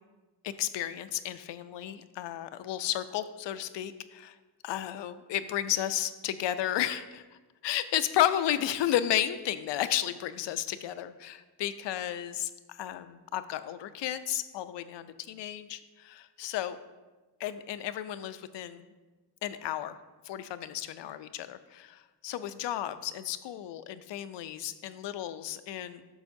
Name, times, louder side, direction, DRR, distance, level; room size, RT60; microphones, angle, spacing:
voice 1, 0.4-4.3 4.6-7.2 7.6-16.8 17.4-18.8 19.4-19.9 20.3-26.0, left 12 dB, 80° left, 12 dB, 0.5 m, -33 dB
9.6 x 6.3 x 2.6 m, 1.2 s
cardioid pair, 85°, 42 cm